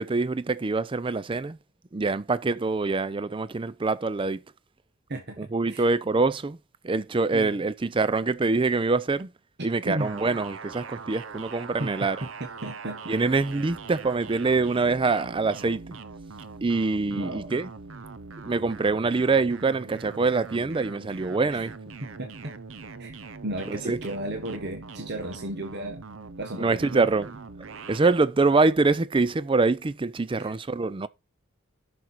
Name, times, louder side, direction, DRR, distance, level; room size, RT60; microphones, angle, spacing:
voice 1, 0.0-1.6 1.9-4.4 5.4-6.6 6.8-9.3 9.6-12.2 13.1-16.0 16.6-17.7 18.4-21.7 23.7-24.0 26.5-27.3 27.9-31.1, right 3 dB, 25° right, 0.4 m, -25 dB
voice 2, 5.1-5.9 7.3-7.6 9.6-10.2 11.8-13.1 17.1-17.5 21.5-21.6 22.0-22.5 23.0-23.2 23.4-26.0 26.4-27.1 30.4-30.5, right 1 dB, 55° right, 1.5 m, -35 dB
sound 1, 10.0-28.0, right 4 dB, 70° right, 0.8 m, -42 dB
10.5 x 6.2 x 4.5 m
head